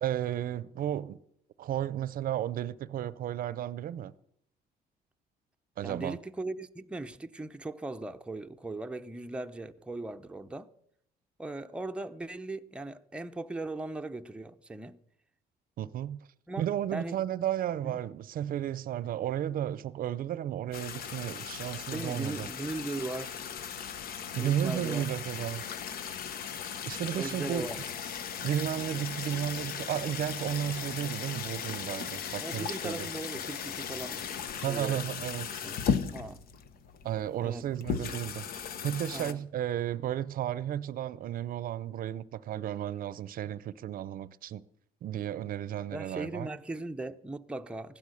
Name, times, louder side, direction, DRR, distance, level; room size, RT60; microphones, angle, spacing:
voice 1, 0.0-1.2 1.6-4.1 5.8-6.2 15.8-16.2 16.6-22.5 24.3-25.7 26.8-27.7 28.4-33.1 34.6-35.6 37.0-44.6 45.0-46.5, right 11 dB, 60° right, 0.6 m, -33 dB
voice 2, 5.8-10.7 11.4-15.0 16.5-16.6 16.9-17.2 17.8-18.0 21.9-23.5 24.4-25.0 27.1-27.8 32.4-35.0 35.6-35.8 36.1-36.4 37.4-37.7 39.1-39.4 45.9-48.0, right 2 dB, 5° right, 0.7 m, -38 dB
sound 1, 20.7-39.3, left 7 dB, 60° left, 1.1 m, -37 dB
16.0 x 12.0 x 6.5 m
cardioid pair, 110°, 17 cm